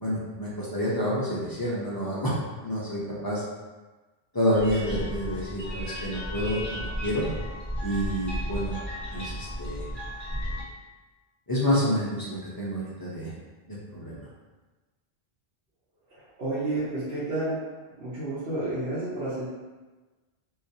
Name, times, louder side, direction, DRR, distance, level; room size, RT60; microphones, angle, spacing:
voice 1, 0.0-2.3 2.6-3.4 4.3-7.2 7.8-8.8 9.1-9.8 11.5-13.3 13.7-14.3, equal, 40° left, -7 dB, 0.3 m, -28 dB
sound 1, 4.5-10.6, equal, ahead, 1.1 m, -34 dB
voice 2, 16.4-17.7 18.0-19.4, right 2 dB, 80° right, -11 dB, 1.0 m, -30 dB
2.3 x 2.3 x 2.7 m, 1.2 s
omnidirectional pair, 1.0 m